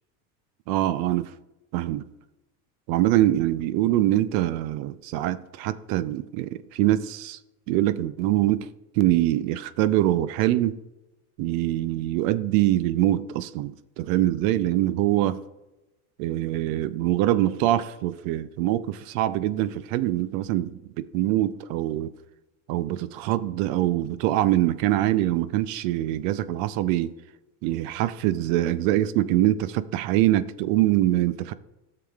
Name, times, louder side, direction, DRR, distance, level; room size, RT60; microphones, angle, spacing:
voice 1, 0.7-1.3 1.7-2.0 2.9-7.4 7.7-8.7 8.9-10.8 11.4-15.4 16.2-22.1 22.7-27.1 27.6-31.5, right 14 dB, 70° right, 0.6 m, -24 dB
12.5 x 6.9 x 2.4 m
supercardioid pair, 105°, 45 cm